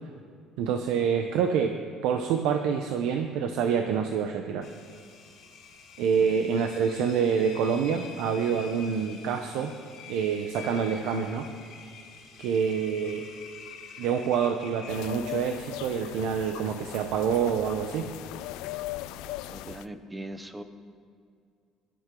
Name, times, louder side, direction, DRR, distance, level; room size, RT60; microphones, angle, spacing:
voice 1, 0.6-1.8 2.0-4.7 6.0-9.7 10.1-11.5 12.4-13.3 14.0-18.1, right 7 dB, 75° right, 6 dB, 0.8 m, -27 dB
Engine, 4.6-15.5, left 6 dB, 65° left, 2.9 m, -47 dB
sound 1, 14.9-19.9, left 16 dB, 85° left, 0.4 m, -39 dB
voice 2, 19.5-20.6, right 1 dB, 10° right, 9 dB, 0.7 m, -40 dB
22.5 x 12.0 x 3.8 m, 2.3 s
cardioid pair, 170°, 0 cm